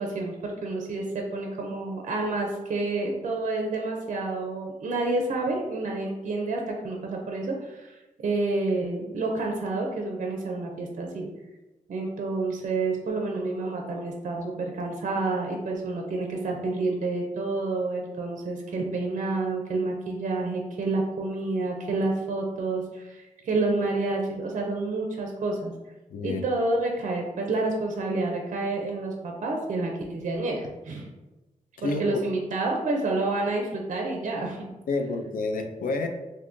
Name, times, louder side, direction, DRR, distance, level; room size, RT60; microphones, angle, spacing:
voice 1, 0.0-11.3 11.9-25.7 26.2-31.1 32.0-34.7, right 2 dB, 60° right, 1 dB, 0.4 m, -29 dB
voice 2, 26.1-26.4 31.8-32.2 34.9-36.1, left 3 dB, 90° left, 5 dB, 0.4 m, -29 dB
2.6 x 2.5 x 3.5 m, 1.1 s
wide cardioid pair, 155°, 14 cm